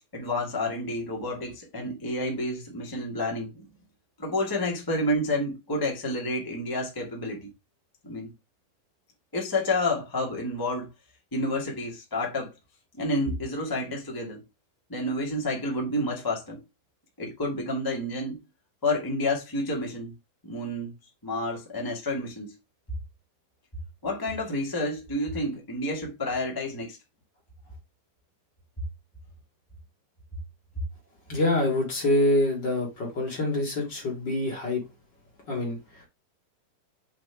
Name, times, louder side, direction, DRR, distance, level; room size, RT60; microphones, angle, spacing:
voice 1, 0.1-3.6 4.2-7.5 8.0-8.3 9.3-10.9 11.3-12.5 12.9-14.4 14.9-16.6 17.2-18.4 18.8-20.1 20.4-20.9 21.2-22.5 24.0-27.0, left 1 dB, 15° left, 0.8 m, -29 dB
voice 2, 31.3-34.8 35.5-36.1, left 1 dB, 35° left, 2.0 m, -26 dB
7.6 x 4.3 x 3.5 m
omnidirectional pair, 4.2 m